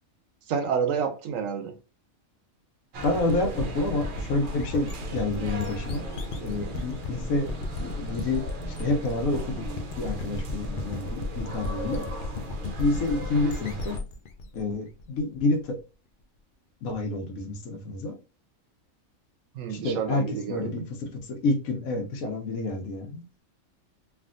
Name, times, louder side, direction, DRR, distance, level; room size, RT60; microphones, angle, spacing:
voice 1, 0.5-1.8 19.5-20.9, right 6 dB, 75° right, 1.0 m, -29 dB
sound 1, 2.9-14.0, right 1 dB, 55° right, 0.6 m, -38 dB
voice 2, 3.0-6.1 6.4-7.5 7.8-8.4 8.8-9.6 10.0-12.0 12.8-14.0 14.5-15.8 16.8-18.1 19.7-23.2, left 2 dB, 90° left, 1.2 m, -28 dB
sound 2, 3.0-15.6, left 2 dB, 70° left, 0.4 m, -35 dB
3.4 x 2.5 x 2.4 m
omnidirectional pair, 1.4 m